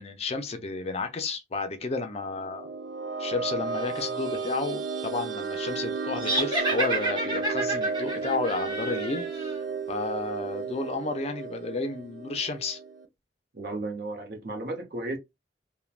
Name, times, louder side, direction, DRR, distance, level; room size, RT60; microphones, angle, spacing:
voice 1, 0.0-2.7 3.2-9.5 9.9-12.8, left 3 dB, 35° left, 0.4 m, -32 dB
sound 1, 2.2-13.1, right 5 dB, 85° right, 0.5 m, -33 dB
sound 2, 6.2-9.6, right 2 dB, 25° right, 1.1 m, -30 dB
voice 2, 13.5-15.2, right 2 dB, 60° right, 0.9 m, -34 dB
3.1 x 2.1 x 2.3 m
head